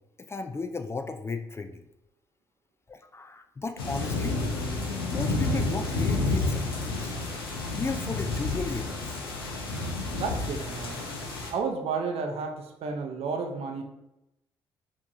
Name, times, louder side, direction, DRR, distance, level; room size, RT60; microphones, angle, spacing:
voice 1, 0.3-1.8 2.9-4.3 5.1-7.1 7.7-9.2, left 3 dB, 20° left, 7 dB, 0.4 m, -35 dB
sound 1, 3.8-11.5, left 2 dB, 85° left, 0.5 m, -30 dB
voice 2, 10.2-11.0 11.5-13.8, right 5 dB, 55° right, 4 dB, 0.6 m, -32 dB
4.5 x 2.9 x 2.6 m, 0.90 s
figure-of-eight pair, 40°, 12 cm